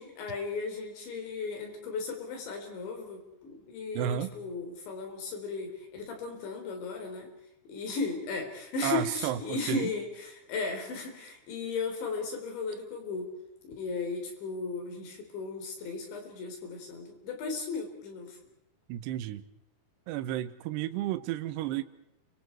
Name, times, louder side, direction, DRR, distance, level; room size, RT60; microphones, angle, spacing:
voice 1, 0.0-7.3 7.7-13.3 13.6-18.4, left 4 dB, 65° left, 6.3 m, -36 dB
voice 2, 4.0-4.3 8.8-9.9 18.9-19.4 20.1-21.8, right 11 dB, 75° right, 2.7 m, -32 dB
29.5 x 25.0 x 4.7 m
omnidirectional pair, 5.8 m